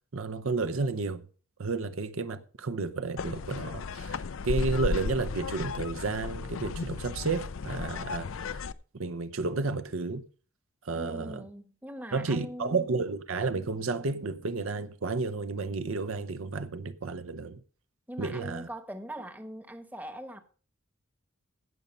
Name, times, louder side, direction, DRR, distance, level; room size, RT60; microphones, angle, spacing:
voice 1, 0.1-1.2 1.6-8.7 8.9-10.2 10.8-11.4 12.1-17.6 18.2-18.7, right 3 dB, 70° right, 0.7 m, -32 dB
sound 1, 3.2-8.7, left 4 dB, 65° left, 0.5 m, -34 dB
voice 2, 11.0-12.9 18.1-20.4, right 1 dB, 10° right, 1.0 m, -41 dB
16.0 x 5.5 x 5.3 m
head